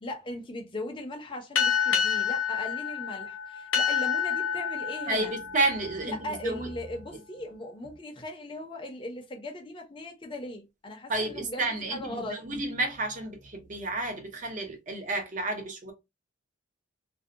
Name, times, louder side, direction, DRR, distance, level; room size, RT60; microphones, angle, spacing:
voice 1, 0.0-5.3 6.0-12.4, left 1 dB, 25° left, 0.5 m, -38 dB
sound 1, 1.5-6.6, left 7 dB, 75° left, 0.6 m, -29 dB
voice 2, 5.1-6.7 11.1-15.9, right 2 dB, 40° right, 0.6 m, -31 dB
2.6 x 2.1 x 2.4 m
head